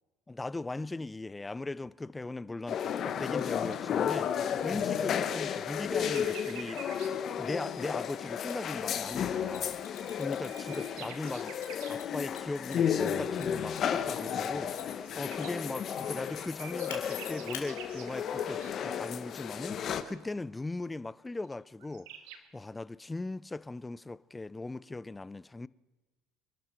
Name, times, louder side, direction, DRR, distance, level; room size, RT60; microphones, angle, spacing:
voice 1, 0.3-6.8 7.4-9.7 10.1-11.5 11.9-22.1 22.5-25.7, left 2 dB, 15° left, 0.5 m, -39 dB
sound 1, 2.7-20.0, left 8 dB, 50° left, 1.1 m, -33 dB
sound 2, 5.8-7.1 9.7-12.0 14.7-18.9 21.5-21.6 21.8-22.4, right 8 dB, 75° right, 1.5 m, -48 dB
Mechanisms, 8.5-8.6 9.5-11.0 11.6-15.1 16.9-17.7, left 12 dB, 80° left, 2.8 m, -46 dB
26.0 x 12.0 x 4.5 m
hypercardioid pair, 80°, 0 cm